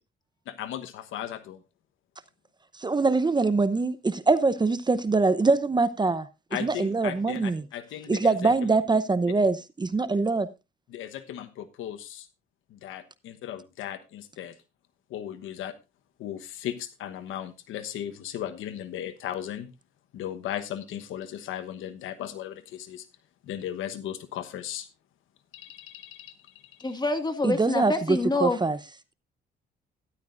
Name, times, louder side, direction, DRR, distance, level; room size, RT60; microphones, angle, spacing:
voice 1, 0.5-1.6 6.5-8.7 10.9-12.3 12.7-14.5 15.1-15.7 16.2-19.7 20.1-23.1 23.4-24.9 25.5-26.3, left 11 dB, 85° left, 1.1 m, -36 dB
voice 2, 2.8-6.3 6.6-7.6 8.1-10.5 27.4-28.8, right 3 dB, 20° right, 0.8 m, -23 dB
voice 3, 26.8-28.6, left 2 dB, 20° left, 1.9 m, -26 dB
13.0 x 11.5 x 2.6 m
cardioid pair, 90°, 20 cm